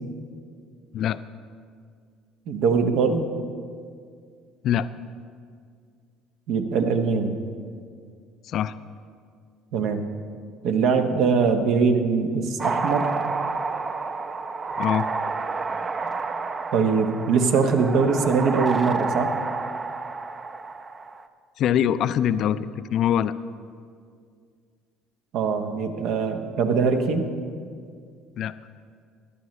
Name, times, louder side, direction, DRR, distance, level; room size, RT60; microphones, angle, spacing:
voice 1, 2.5-3.2 6.5-7.4 9.7-10.0 10.6-13.1 16.7-19.4 25.3-27.3, right 5 dB, 65° right, 6 dB, 1.0 m, -22 dB
sound 1, 12.6-21.3, right 4 dB, 30° right, 0.5 m, -29 dB
voice 2, 14.8-15.1 21.6-23.3 28.4-28.5, left 10 dB, 60° left, 14 dB, 0.4 m, -23 dB
15.5 x 10.5 x 3.2 m, 2.2 s
supercardioid pair, 80°, 0 cm